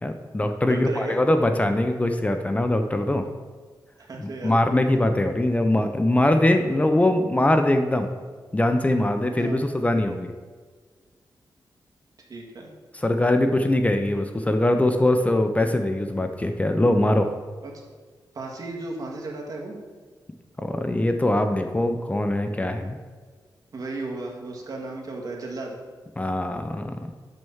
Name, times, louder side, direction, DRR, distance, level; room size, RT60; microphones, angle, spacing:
voice 1, 0.0-3.3 4.2-8.1 8.5-10.3 12.9-17.3 20.6-23.0 26.2-27.1, left 1 dB, 20° left, 7 dB, 0.6 m, -22 dB
voice 2, 0.6-1.2 4.0-4.6 9.3-9.6 12.3-12.7 18.3-19.8 23.7-25.8, right 2 dB, 55° right, -1 dB, 1.9 m, -34 dB
6.4 x 6.1 x 7.0 m, 1.5 s
wide cardioid pair, 105°, 8 cm